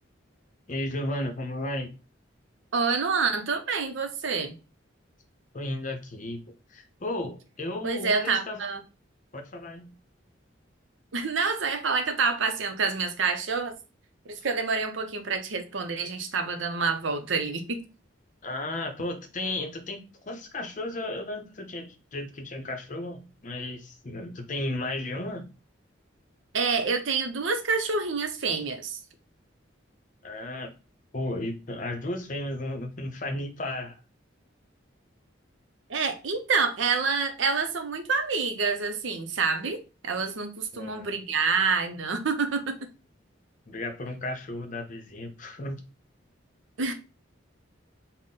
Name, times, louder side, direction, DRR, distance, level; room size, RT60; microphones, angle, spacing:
voice 1, 0.7-1.9 5.5-8.7 9.3-10.0 18.4-25.5 30.2-30.7 31.1-34.0 40.7-41.1 43.7-45.8 46.8-46.9, left 1 dB, 40° left, 0.6 m, -34 dB
voice 2, 2.7-4.6 7.8-8.8 11.1-13.7 14.3-17.8 26.5-29.0 35.9-39.8 40.0-42.9 46.8-46.9, right 4 dB, 75° right, 0.6 m, -27 dB
3.9 x 2.1 x 3.7 m
head